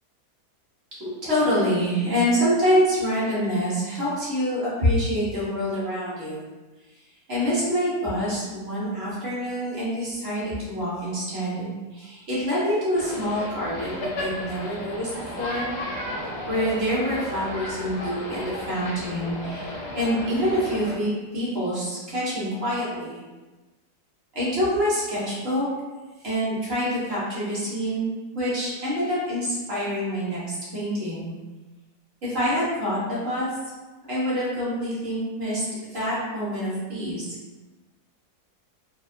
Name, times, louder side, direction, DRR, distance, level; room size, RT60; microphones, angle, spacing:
voice 1, 1.0-6.5 7.3-15.7 16.5-23.2 24.3-25.7 26.2-28.1 28.3-31.3 32.2-33.5 34.1-35.6 35.9-37.2, equal, 45° right, -8 dB, 1.0 m, -26 dB
sound 1, 12.9-21.0, left 1 dB, 65° left, 0.6 m, -34 dB
2.8 x 2.3 x 2.5 m, 1.2 s
omnidirectional pair, 1.7 m